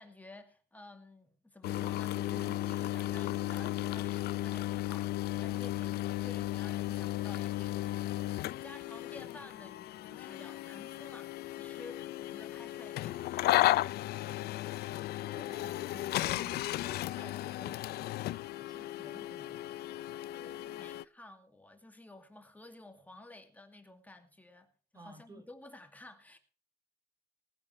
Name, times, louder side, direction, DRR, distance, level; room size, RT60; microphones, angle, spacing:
voice 1, 0.0-13.6 20.3-24.7 24.9-26.4, left 2 dB, 10° left, 2.2 m, -53 dB
sound 1, 1.6-21.0, left 15 dB, 70° left, 0.6 m, -35 dB
voice 2, 14.2-14.5 15.2-18.2 18.6-19.8 24.9-25.5, right 2 dB, 20° right, 1.9 m, -54 dB
19.5 x 10.5 x 3.2 m
cardioid pair, 110°, 17 cm